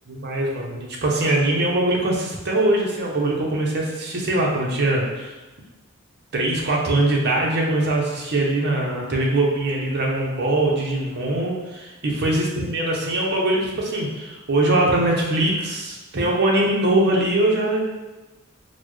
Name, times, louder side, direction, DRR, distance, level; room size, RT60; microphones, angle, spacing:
voice 1, 0.1-5.3 6.3-17.8, right 1 dB, 50° right, -2 dB, 0.7 m, -22 dB
4.1 x 2.1 x 3.1 m, 1.1 s
head